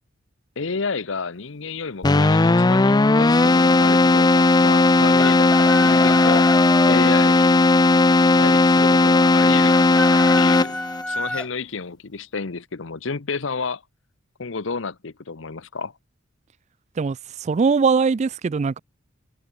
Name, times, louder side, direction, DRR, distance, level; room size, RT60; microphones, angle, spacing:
voice 1, 0.6-6.5 6.9-7.6 8.1-10.8 11.1-13.8 14.4-15.9, left 4 dB, 65° left, 0.9 m, -30 dB
Keyboard (musical), 2.0-11.0, left 2 dB, 20° left, 0.5 m, -16 dB
Chicken rooster, 5.2-7.0 9.7-11.5, left 1 dB, 5° left, 1.4 m, -30 dB
voice 2, 17.0-18.8, right 5 dB, 35° right, 0.3 m, -21 dB
head